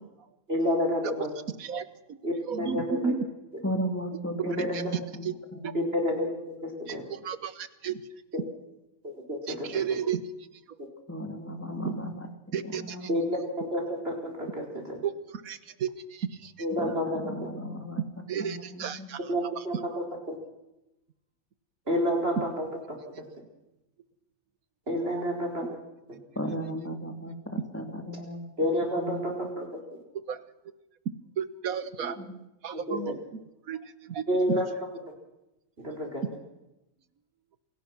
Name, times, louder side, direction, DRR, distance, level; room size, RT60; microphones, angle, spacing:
voice 1, 0.5-1.3 2.2-3.1 4.4-4.8 5.7-6.3 6.6-7.0 8.3-8.4 9.0-9.8 13.1-15.0 16.6-17.2 19.3-20.4 21.9-22.7 23.2-23.3 24.9-25.7 28.6-29.7 32.0-32.1 32.7-33.1 34.3-34.7 35.8-36.2, equal, 45° right, 1 dB, 5.1 m, -29 dB
voice 2, 1.6-2.2 2.5-3.3 4.7-4.8 5.2-5.3 5.6-5.7 6.9-8.0 9.5-10.2 11.8-11.9 12.5-13.1 15.0-16.5 18.3-19.3 19.6-19.7 25.6-25.8 30.3-30.4 31.4-32.2 32.6-33.1 33.7-34.6, right 7 dB, 85° right, 14 dB, 1.6 m, -33 dB
voice 3, 3.6-5.2 5.5-5.8 11.1-13.1 16.8-18.0 18.4-19.1 26.4-28.5 29.0-29.2 32.2-32.3 32.9-33.2, equal, 10° left, 5 dB, 2.8 m, -35 dB
27.5 x 17.5 x 6.0 m, 0.90 s
omnidirectional pair, 1.5 m